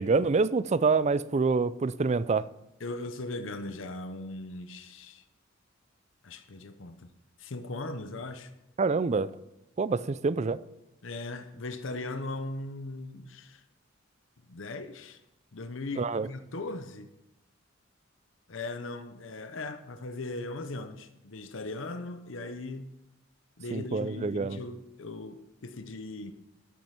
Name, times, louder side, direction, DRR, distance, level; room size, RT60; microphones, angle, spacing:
voice 1, 0.0-2.4 8.8-9.3 9.8-10.6 16.0-16.3 23.7-24.6, right 4 dB, 35° right, 0.4 m, -26 dB
voice 2, 2.8-5.2 6.2-7.1 7.4-8.5 11.0-13.6 14.5-15.2 15.5-17.1 18.5-22.9 23.6-26.3, left 2 dB, 70° left, 0.8 m, -39 dB
13.0 x 7.6 x 5.7 m
head